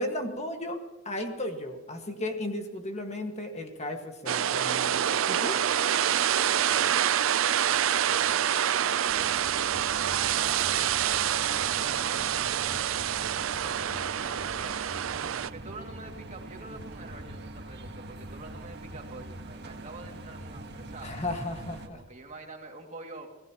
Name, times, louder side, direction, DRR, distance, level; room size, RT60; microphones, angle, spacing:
voice 1, 0.0-5.5 11.7-12.1 21.0-22.0, left 1 dB, 35° left, 4 dB, 1.7 m, -35 dB
sound 1, 4.3-15.5, right 10 dB, 80° right, 0.5 m, -27 dB
voice 2, 7.9-13.3 13.6-14.8 15.5-21.4 21.8-23.3, right 2 dB, 35° right, 2 dB, 2.3 m, -46 dB
sound 2, 9.1-21.9, right 1 dB, 55° right, 1.6 m, -43 dB
26.0 x 17.0 x 3.0 m, 1.2 s
head